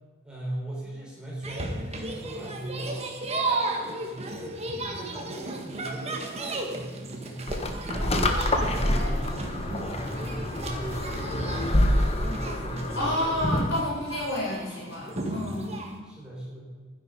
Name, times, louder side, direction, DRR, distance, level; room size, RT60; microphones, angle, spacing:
voice 1, 0.2-4.6 4.9-13.0 15.0-15.4 16.0-16.6, right 1 dB, 5° right, -6 dB, 4.7 m, -39 dB
sound 1, 1.4-16.0, right 2 dB, 35° right, 1.7 m, -35 dB
sound 2, 7.5-13.8, left 1 dB, 35° left, 1.2 m, -27 dB
voice 2, 12.9-15.8, left 1 dB, 65° left, -3 dB, 4.8 m, -30 dB
12.5 x 10.5 x 5.3 m, 1.4 s
head